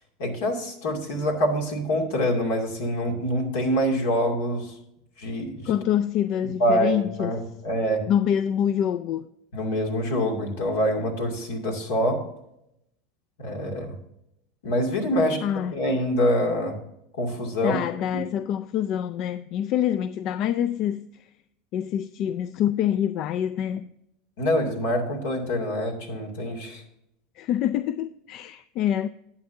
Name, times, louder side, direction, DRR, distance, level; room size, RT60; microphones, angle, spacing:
voice 1, 0.2-4.7 5.2-5.7 6.6-8.0 9.5-12.2 13.4-14.0 14.6-15.4 15.7-16.8 17.2-17.8 18.1-18.2 24.4-26.8, equal, 80° left, 2.4 m, -25 dB
voice 2, 5.7-7.4 8.1-9.3 15.4-15.7 17.6-21.3 21.7-23.9 27.4-29.1, left 10 dB, 55° left, 0.3 m, -26 dB
11.5 x 8.5 x 2.7 m
hypercardioid pair, 100°, 0 cm